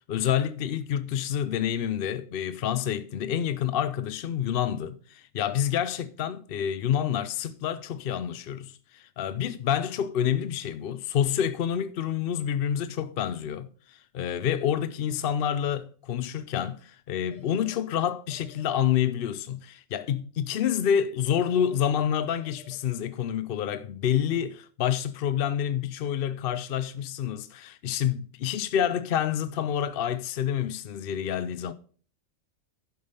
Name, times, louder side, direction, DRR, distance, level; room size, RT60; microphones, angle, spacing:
voice 1, 0.1-31.7, left 9 dB, 60° left, 0.7 m, -28 dB
sound 1, 17.3-17.8 18.3-18.8 21.3-21.8 22.3-22.8, left 2 dB, 40° right, 2.9 m, -52 dB
11.5 x 5.2 x 5.5 m
omnidirectional pair, 1.2 m